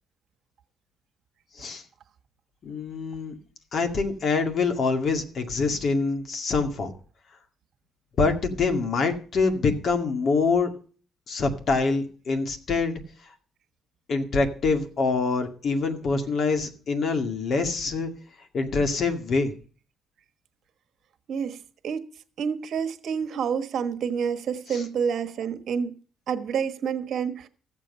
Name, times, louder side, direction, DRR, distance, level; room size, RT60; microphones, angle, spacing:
voice 1, 2.6-3.3 3.7-6.9 8.2-10.7 11.3-13.0 14.1-18.1 18.5-19.5 24.7-24.8, left 4 dB, 55° left, 2.1 m, -25 dB
voice 2, 21.3-21.6 21.8-22.0 22.4-26.0 26.3-27.5, right 7 dB, 65° right, 1.2 m, -28 dB
15.0 x 7.5 x 5.5 m
cardioid pair, 90°, 0 cm